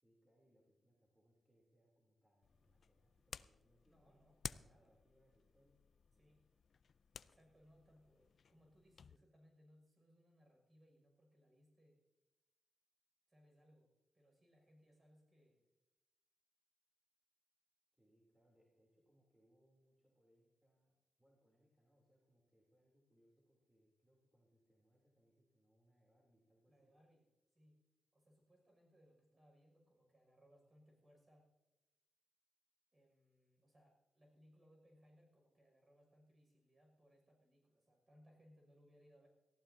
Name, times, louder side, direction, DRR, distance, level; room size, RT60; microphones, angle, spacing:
voice 1, 0.0-5.8 6.1-6.3 17.9-26.9, equal, 10° right, -3 dB, 3.3 m, -76 dB
sound 1, 2.4-9.2, left 6 dB, 60° left, 0.3 m, -55 dB
voice 2, 3.9-4.9 6.2-6.4 7.2-12.0 13.3-15.6 26.7-27.2 27.5-27.8 28.1-31.5 32.9-39.3, equal, 30° right, 1 dB, 6.2 m, -69 dB
18.5 x 15.0 x 2.8 m, 1.0 s
cardioid pair, 70°, 0 cm